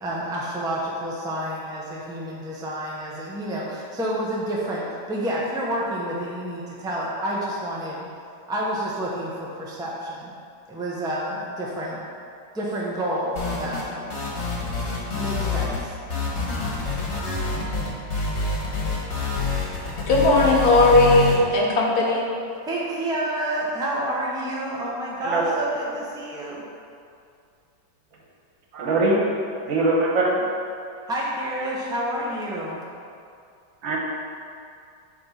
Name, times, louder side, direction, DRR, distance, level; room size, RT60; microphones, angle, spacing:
voice 1, 0.0-8.0 8.5-10.3 10.7-12.0 12.5-14.1 15.2-15.9 22.6-26.6 31.0-32.8, right 1 dB, 5° right, -4 dB, 0.5 m, -29 dB
sound 1, 13.4-13.9 14.1-15.8 16.1-21.4, left 4 dB, 40° left, 1.5 m, -27 dB
voice 2, 20.1-22.3, left 2 dB, 60° left, -2 dB, 1.3 m, -17 dB
voice 3, 28.7-29.2 29.7-30.4 33.8-34.0, right 2 dB, 85° right, -3 dB, 1.9 m, -21 dB
7.8 x 3.5 x 5.6 m, 2.4 s
omnidirectional pair, 2.0 m